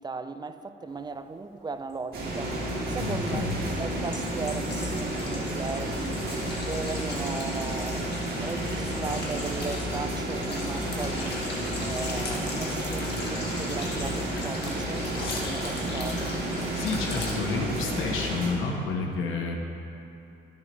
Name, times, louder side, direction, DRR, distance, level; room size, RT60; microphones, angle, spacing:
voice 1, 0.0-2.6 2.9-6.2 6.6-11.4 11.8-16.4, right 4 dB, 20° right, 9 dB, 0.5 m, -37 dB
sound 1, 1.9-2.0 3.3-17.3, left 2 dB, 55° left, 1.8 m, -39 dB
sound 2, 2.1-18.5, right 1 dB, 50° right, 2.4 m, -31 dB
voice 2, 3.0-3.6 14.9-15.4 16.7-19.6, left 3 dB, 85° left, 1 dB, 1.2 m, -30 dB
13.0 x 7.3 x 3.2 m, 2.7 s
cardioid pair, 90°, 20 cm